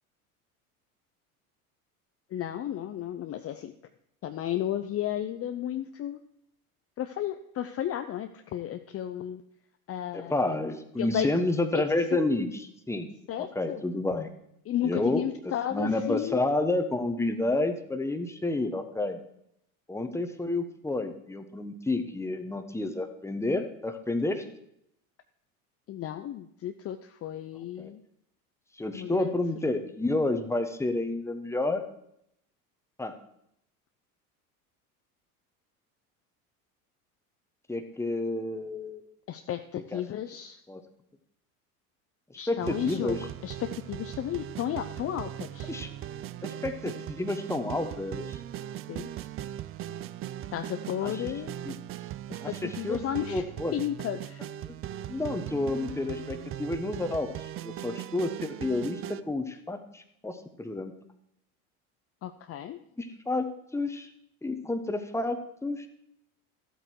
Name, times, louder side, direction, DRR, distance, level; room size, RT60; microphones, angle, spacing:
voice 1, 2.3-3.7 4.2-6.2 7.0-9.4 9.9-10.3 11.0-11.3 13.3-13.8 14.7-16.4 25.9-28.0 28.9-29.4 39.3-40.6 42.4-43.2 43.4-45.7 48.9-49.1 50.5-51.5 52.3-53.4 53.7-54.4 62.2-62.8, left 11 dB, 35° left, 8 dB, 0.7 m, -33 dB
voice 2, 10.1-13.1 13.4-14.3 14.8-15.2 15.7-19.2 19.9-24.5 27.6-27.9 28.8-31.8 33.0-33.1 37.7-39.0 39.7-40.0 40.7-40.8 42.3-43.2 45.7-45.9 46.4-48.4 51.0-51.3 51.6-51.7 52.4-53.0 53.3-53.7 54.7-54.8 55.1-60.9 63.0-63.5 63.7-64.1 64.4-65.9, left 2 dB, 5° left, 7 dB, 1.2 m, -30 dB
sound 1, 42.6-59.2, right 11 dB, 30° right, 0.4 m, -39 dB
13.0 x 8.0 x 4.7 m, 0.75 s
hypercardioid pair, 85°, 44 cm